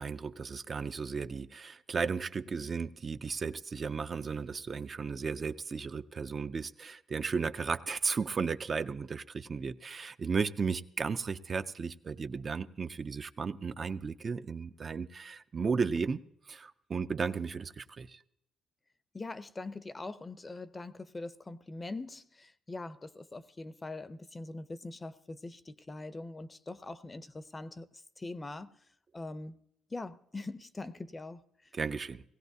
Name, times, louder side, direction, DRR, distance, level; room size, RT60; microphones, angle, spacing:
voice 1, 0.0-18.2 31.7-32.2, right 5 dB, 40° right, 0.4 m, -35 dB
voice 2, 19.1-27.9 28.2-28.7 29.1-29.6 29.9-31.4, left 2 dB, 25° left, 0.5 m, -42 dB
18.5 x 16.0 x 2.7 m
cardioid pair, 90°, 0 cm